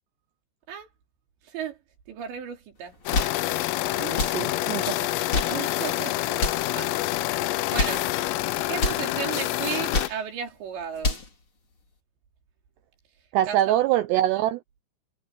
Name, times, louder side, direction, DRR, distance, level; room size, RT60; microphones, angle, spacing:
voice 1, 1.5-1.8 2.1-2.9 5.5-7.0 7.7-8.1 8.7-11.2 13.5-13.8, right 8 dB, 60° right, 5.6 m, -34 dB
sound 1, 2.9-3.4 4.1-4.4 5.1-5.6 6.3-6.7 7.6-8.1 8.7-9.1 9.7-10.2 10.8-11.3, left 3 dB, 30° left, 4.3 m, -28 dB
sound 2, 3.1-10.1, left 16 dB, 90° left, 3.6 m, -27 dB
voice 2, 4.0-5.0 13.3-14.6, right 13 dB, 90° right, 2.4 m, -24 dB
omnidirectional pair, 5.8 m